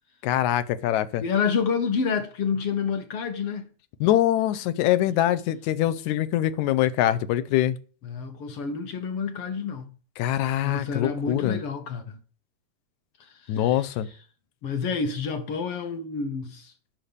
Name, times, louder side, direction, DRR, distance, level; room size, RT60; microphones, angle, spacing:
voice 1, 0.2-1.2 4.0-7.8 10.2-11.6 13.5-14.1, left 13 dB, 90° left, 2.0 m, -23 dB
voice 2, 1.2-3.7 8.0-9.9 10.6-12.2 13.2-13.9 14.6-16.7, left 5 dB, 65° left, 1.5 m, -29 dB
9.1 x 5.9 x 6.7 m
omnidirectional pair, 3.3 m